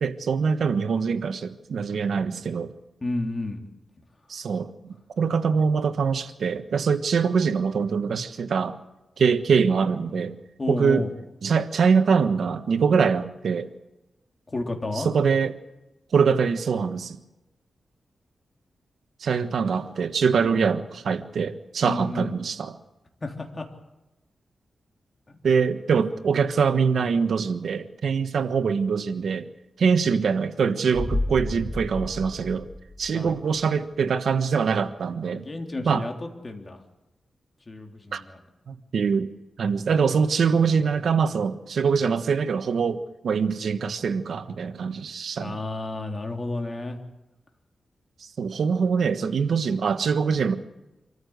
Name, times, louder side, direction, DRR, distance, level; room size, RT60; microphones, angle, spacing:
voice 1, 0.0-2.7 4.3-4.7 5.2-8.8 9.2-10.4 10.7-11.1 11.4-13.7 14.9-15.5 16.1-17.2 19.2-22.8 25.4-29.5 29.8-32.7 33.0-35.5 35.8-36.0 38.1-38.2 38.7-39.3 39.6-45.6 48.2-50.5, right 6 dB, 75° right, 1.4 m, -23 dB
voice 2, 3.0-3.6 10.6-11.1 14.5-15.1 20.4-20.7 21.8-22.4 23.2-23.7 25.3-25.4 33.1-33.3 35.3-36.8 37.7-38.4 45.4-47.0, left 2 dB, 30° left, 3.4 m, -31 dB
sound 1, 30.9-33.6 33.9-34.0, left 1 dB, ahead, 2.4 m, -31 dB
25.5 x 14.5 x 8.0 m
wide cardioid pair, 105°, 0 cm